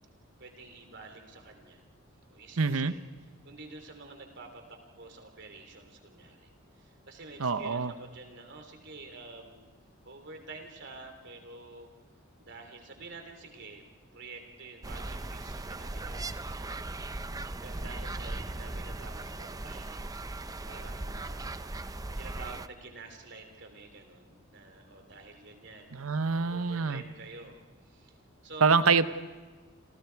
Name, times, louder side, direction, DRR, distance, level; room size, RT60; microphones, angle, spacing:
voice 1, 0.4-1.9 2.3-6.5 6.8-9.6 10.0-11.9 12.4-13.9 14.1-16.9 17.6-20.1 20.6-21.7 22.2-25.9 26.4-28.2 28.4-29.0, right 3 dB, 55° right, 5 dB, 3.3 m, -48 dB
voice 2, 2.6-2.9 7.4-7.9 25.9-27.0 28.6-29.1, right 5 dB, 90° right, 13 dB, 0.9 m, -25 dB
sound 1, 14.8-22.7, right 2 dB, 15° right, 0.6 m, -38 dB
28.0 x 27.0 x 4.7 m, 1.4 s
head